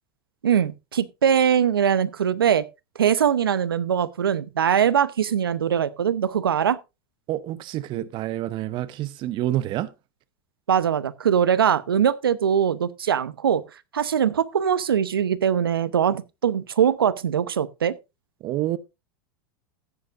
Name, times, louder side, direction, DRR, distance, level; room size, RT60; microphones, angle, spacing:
voice 1, 0.4-2.7 3.0-6.8 10.7-13.6 13.9-18.0, right 8 dB, 85° right, 0.8 m, -22 dB
voice 2, 7.3-9.9 18.4-18.8, right 14 dB, 45° right, 0.8 m, -28 dB
14.5 x 9.8 x 2.5 m
hypercardioid pair, 95°, 12 cm